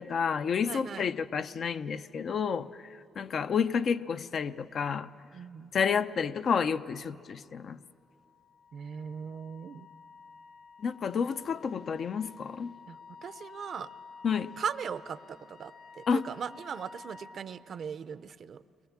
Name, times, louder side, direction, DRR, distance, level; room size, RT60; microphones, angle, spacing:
voice 1, 0.0-5.1 5.7-7.8 10.8-12.7 14.2-14.5 16.1-16.2, left 6 dB, 55° left, 0.6 m, -30 dB
voice 2, 0.6-1.1 5.3-5.7 8.7-9.9 12.9-13.9 14.6-18.6, right 7 dB, 55° right, 0.7 m, -39 dB
Wind instrument woodwind instrument, 8.0-17.4, left 4 dB, 80° left, 1.7 m, -51 dB
29.0 x 22.5 x 7.3 m
cardioid pair, 90°, 0 cm